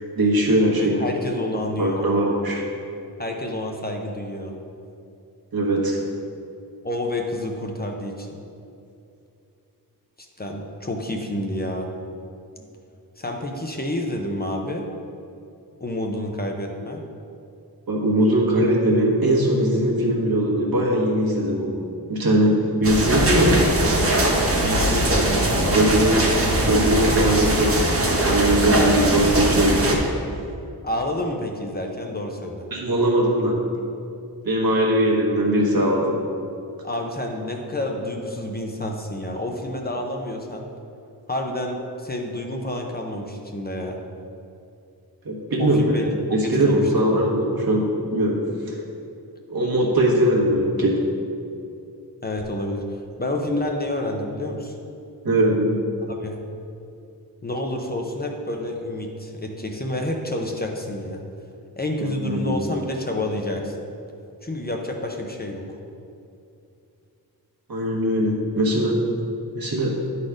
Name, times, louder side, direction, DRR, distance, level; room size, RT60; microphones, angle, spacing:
voice 1, 0.1-1.0 1.8-2.6 5.5-6.0 17.9-21.8 22.1-23.8 25.7-26.2 26.6-27.7 28.2-30.1 32.7-33.6 34.4-36.2 45.2-45.9 46.3-48.4 48.7-48.8 49.5-51.0 55.2-55.8 62.0-62.6 67.7-68.9 69.5-69.9, right 1 dB, 65° right, -3 dB, 1.5 m, -20 dB
voice 2, 0.8-2.1 3.2-4.6 6.8-8.4 10.4-11.9 13.2-14.8 15.8-17.0 24.6-26.9 30.8-32.7 36.8-40.7 41.3-44.0 45.6-46.4 46.7-47.2 52.2-54.8 56.1-56.4 57.4-61.2 61.8-63.8 64.4-65.6, left 1 dB, 25° left, 1 dB, 0.7 m, -29 dB
sound 1, 22.8-29.9, right 1 dB, 35° right, 1.1 m, -21 dB
10.0 x 4.2 x 5.0 m, 2.6 s
wide cardioid pair, 130°, 38 cm